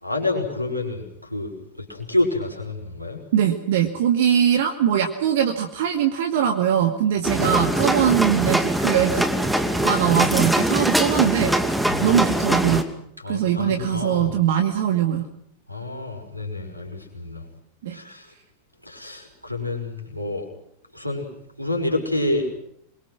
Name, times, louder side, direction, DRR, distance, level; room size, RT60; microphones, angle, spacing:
voice 1, 0.0-1.0 1.3-1.5 1.8-3.2 11.9-12.2 13.2-14.3 15.7-17.4 17.9-18.2 18.9-20.5 20.9-21.3 21.6-22.5, left 2 dB, 90° right, 6 dB, 5.8 m, -28 dB
voice 2, 3.3-9.3 9.8-11.6 12.0-12.9 13.3-15.3 17.8-18.0, right 9 dB, 55° right, 5 dB, 2.3 m, -21 dB
sound 1, 7.2-12.8, right 1 dB, 5° right, 2.6 m, -22 dB
27.0 x 23.0 x 6.3 m, 0.72 s
figure-of-eight pair, 90°, 0 cm